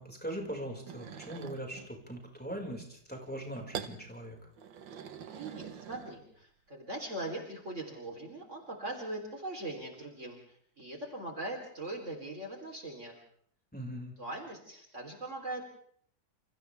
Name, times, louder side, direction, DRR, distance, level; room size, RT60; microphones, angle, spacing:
voice 1, 0.0-4.4 13.7-14.1, right 1 dB, 5° left, 0 dB, 5.3 m, -40 dB
sound 1, 0.9-1.9 3.7-4.0 4.6-6.4, right 8 dB, 80° right, 2.0 m, -44 dB
voice 2, 5.3-13.2 14.2-15.6, right 2 dB, 40° right, 1 dB, 4.0 m, -41 dB
29.0 x 29.0 x 3.5 m, 0.62 s
omnidirectional pair, 2.0 m